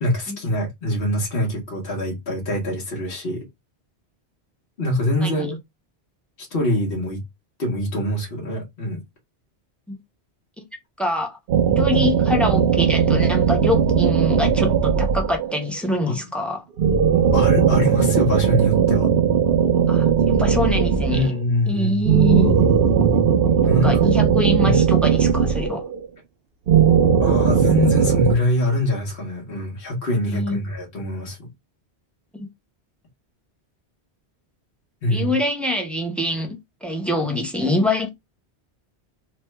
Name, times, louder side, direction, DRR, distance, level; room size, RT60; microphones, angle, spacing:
voice 1, 0.0-3.4 4.8-5.6 6.4-7.2 7.6-9.0 16.1-16.2 17.3-19.1 21.1-22.4 23.6-24.0 24.6-24.8 27.2-31.5 35.0-35.4, left 1 dB, 60° left, 1.2 m, -24 dB
voice 2, 11.0-11.4 11.8-16.6 19.9-21.3 21.7-22.5 23.6-25.8 30.3-30.6 32.3-32.5 35.1-38.1, left 1 dB, ahead, 0.4 m, -25 dB
sound 1, 11.5-15.7 16.8-21.4 22.0-26.1 26.7-28.3, right 7 dB, 65° right, 0.8 m, -18 dB
3.2 x 2.2 x 3.1 m
omnidirectional pair, 1.1 m